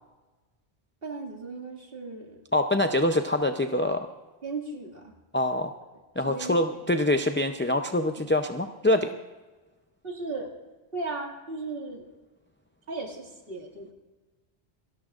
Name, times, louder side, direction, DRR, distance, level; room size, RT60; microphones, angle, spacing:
voice 1, 1.0-2.4 4.4-5.1 6.2-6.6 10.0-10.5 10.9-12.1 12.9-13.9, right 3 dB, 60° right, 1 dB, 2.4 m, -36 dB
voice 2, 2.5-4.1 5.3-5.8 6.2-9.1, left 1 dB, 20° left, 5 dB, 0.3 m, -25 dB
27.5 x 12.5 x 2.5 m, 1.2 s
omnidirectional pair, 1.1 m